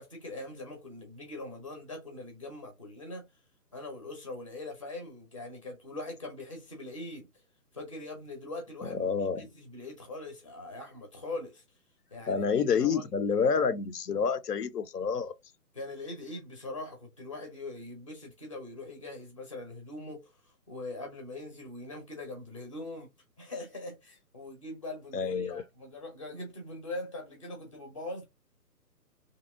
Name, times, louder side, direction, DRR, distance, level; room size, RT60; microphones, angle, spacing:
voice 1, 0.0-3.3 3.7-7.3 7.7-9.1 9.4-11.6 12.1-13.1 15.7-20.3 20.7-23.1 23.4-28.2, left 2 dB, 20° left, 0.5 m, -42 dB
voice 2, 9.0-9.4 12.3-15.3 25.1-25.6, left 6 dB, 75° left, 0.6 m, -28 dB
2.8 x 2.7 x 2.4 m
figure-of-eight pair, 150°, 48 cm